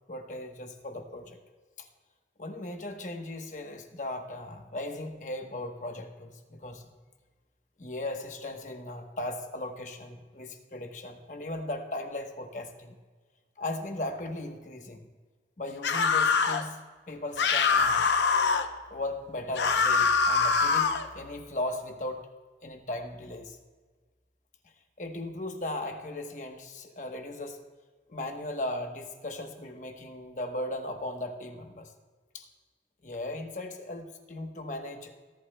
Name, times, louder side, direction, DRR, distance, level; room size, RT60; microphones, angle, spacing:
voice 1, 0.1-1.4 1.8-1.9 2.4-6.8 7.8-12.9 13.6-15.0 15.6-16.8 17.1-18.1 18.9-22.2 22.6-23.6 25.0-27.6 28.1-31.9 32.3-32.5 33.0-35.1, left 1 dB, 45° left, 4 dB, 1.1 m, -37 dB
sound 1, 15.8-16.6 17.4-18.7 19.5-21.1, left 5 dB, 80° left, 0.7 m, -24 dB
18.0 x 11.0 x 2.2 m, 1.4 s
head